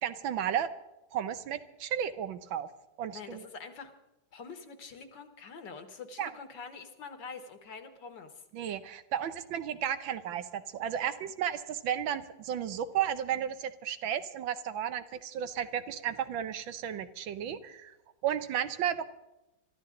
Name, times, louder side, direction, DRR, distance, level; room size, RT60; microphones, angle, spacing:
voice 1, 0.0-0.7 1.1-2.7 3.0-3.4 6.2-6.3 8.5-18.0 18.2-19.1, right 9 dB, 75° right, 11 dB, 1.6 m, -33 dB
voice 2, 3.1-3.9 4.3-8.3, left 5 dB, 65° left, 8 dB, 2.0 m, -45 dB
24.5 x 13.5 x 3.8 m, 0.96 s
omnidirectional pair, 2.2 m